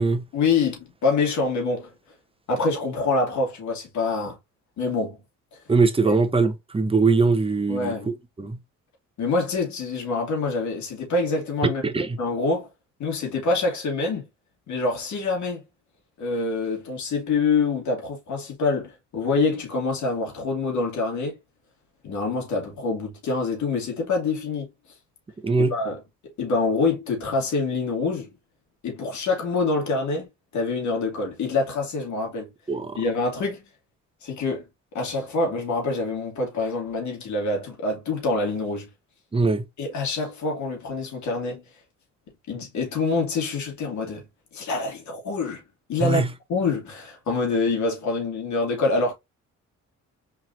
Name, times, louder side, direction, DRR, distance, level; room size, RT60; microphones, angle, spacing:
voice 1, 0.3-1.9 2.5-4.4 4.8-5.2 6.0-6.1 7.7-8.1 9.2-11.8 12.2-12.7 13.0-14.3 14.7-15.6 16.2-21.4 22.0-24.7 25.6-26.0 26.4-28.3 28.8-30.3 30.5-32.5 32.9-33.7 34.2-34.7 34.9-38.9 39.8-41.6 42.5-44.2 44.5-45.6 45.9-46.2 46.5-49.1, left 3 dB, 70° left, 2.3 m, -26 dB
voice 2, 5.7-7.9 8.4-8.6 11.8-12.2 25.4-25.7 32.7-33.0 39.3-39.6 46.0-46.3, right 4 dB, 20° right, 0.9 m, -21 dB
4.5 x 3.9 x 2.6 m
cardioid pair, 90°, 30 cm